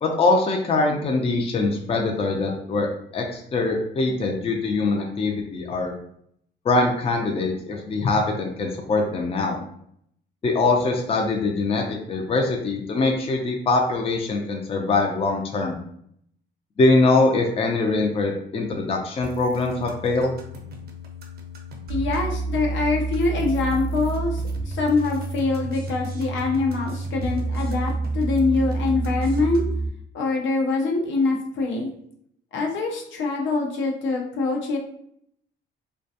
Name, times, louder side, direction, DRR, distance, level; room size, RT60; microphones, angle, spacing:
voice 1, 0.0-5.9 6.6-9.6 10.4-15.8 16.8-20.3, left 3 dB, 30° left, 1 dB, 0.4 m, -23 dB
sound 1, 19.2-29.9, right 3 dB, 50° right, 0.6 m, -29 dB
voice 2, 21.9-29.6 30.1-31.9 32.5-34.8, left 3 dB, 70° left, 1 dB, 0.6 m, -24 dB
2.4 x 2.2 x 2.6 m, 0.69 s
cardioid pair, 90°, 20 cm